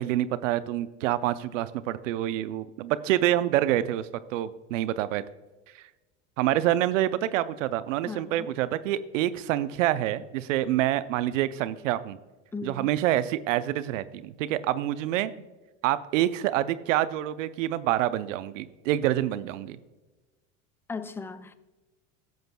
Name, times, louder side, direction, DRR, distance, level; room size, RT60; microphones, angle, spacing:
voice 1, 0.0-5.2 5.8-5.9 6.4-12.2 12.6-15.3 15.8-19.8, right 13 dB, 85° right, 0.6 m, -27 dB
voice 2, 8.1-8.5 12.5-12.9 20.9-21.5, left 4 dB, 5° left, 0.3 m, -37 dB
12.5 x 7.8 x 2.2 m
hypercardioid pair, 90°, 37 cm